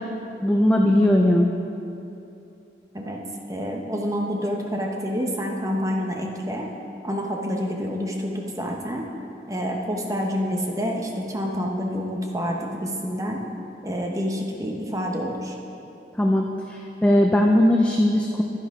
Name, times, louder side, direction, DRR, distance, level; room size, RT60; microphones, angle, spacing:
voice 1, 0.4-1.5 16.2-18.4, left 1 dB, 5° left, 1 dB, 0.4 m, -19 dB
voice 2, 3.5-6.7 7.0-9.1 9.5-13.4 13.8-15.5, equal, 20° right, 0 dB, 0.9 m, -28 dB
11.0 x 9.9 x 3.6 m, 2.8 s
head